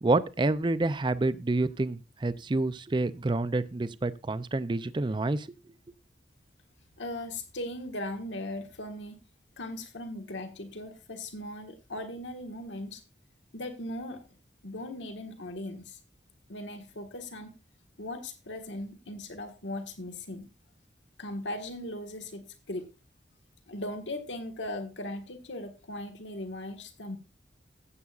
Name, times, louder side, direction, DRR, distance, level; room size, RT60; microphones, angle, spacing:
voice 1, 0.0-5.5, right 2 dB, 25° right, 0.4 m, -28 dB
voice 2, 7.0-9.1 9.6-13.0 13.5-14.2 14.6-16.0 16.5-17.5 18.0-20.5 21.2-22.9 23.7-27.2, left 1 dB, 90° left, 1.5 m, -38 dB
15.5 x 8.2 x 2.4 m
head